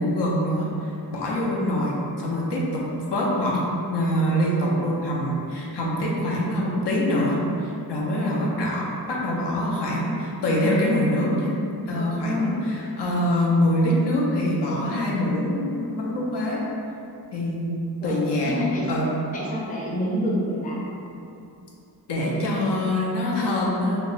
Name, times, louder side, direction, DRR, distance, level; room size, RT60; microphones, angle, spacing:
voice 1, 0.0-2.8 3.1-3.6 3.9-11.5 11.9-16.6 17.3-18.6 18.9-19.1 22.1-24.0, left 1 dB, 85° left, -4 dB, 0.6 m, -24 dB
voice 2, 12.0-12.6 18.0-18.2 18.5-18.8 19.3-20.8, left 1 dB, 20° left, -5 dB, 0.5 m, -27 dB
2.3 x 2.0 x 3.7 m, 2.6 s
wide cardioid pair, 110°, 40 cm